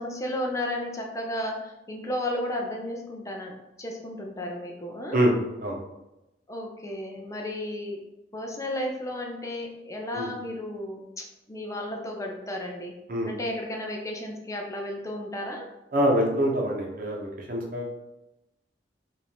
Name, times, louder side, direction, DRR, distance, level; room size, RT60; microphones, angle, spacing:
voice 1, 0.0-5.2 6.5-8.0 8.3-12.9 13.3-15.7, left 1 dB, 20° left, 0 dB, 0.5 m, -33 dB
voice 2, 15.9-17.9, equal, 50° right, 0 dB, 0.9 m, -25 dB
5.3 x 2.6 x 3.4 m, 0.95 s
head